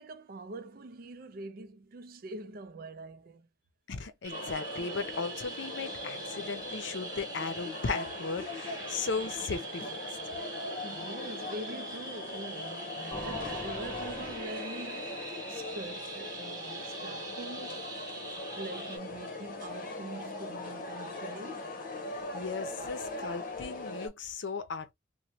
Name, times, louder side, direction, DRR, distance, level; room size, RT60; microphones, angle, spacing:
voice 1, 0.0-3.5 10.8-15.2 15.5-17.8 18.6-21.7, right 2 dB, 55° right, 0.5 m, -44 dB
voice 2, 3.9-9.9 22.1-24.9, left 4 dB, 85° left, 0.6 m, -36 dB
sound 1, 4.2-19.0, right 3 dB, 20° right, 1.0 m, -43 dB
sound 2, 4.3-24.1, left 2 dB, 50° left, 1.0 m, -40 dB
sound 3, 13.1-16.8, left 1 dB, 10° left, 0.7 m, -45 dB
3.1 x 2.1 x 2.7 m
head